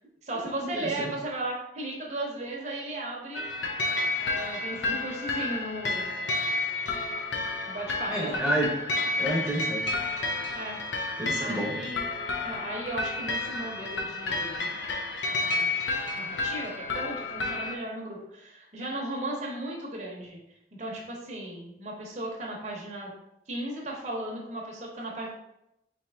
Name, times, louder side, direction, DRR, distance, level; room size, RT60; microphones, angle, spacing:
voice 1, 0.2-3.5 4.2-6.1 7.6-8.4 10.5-10.8 11.4-12.0 12.4-14.7 15.3-15.7 16.1-20.4 20.8-23.1 23.5-25.3, right 1 dB, 40° right, -2 dB, 0.8 m, -36 dB
voice 2, 0.7-1.1 8.1-8.8 9.2-9.9 11.2-11.8, right 1 dB, 5° right, -5 dB, 0.8 m, -29 dB
sound 1, 3.3-17.7, left 2 dB, 85° left, 0.5 m, -31 dB
4.3 x 2.8 x 3.4 m, 0.84 s
head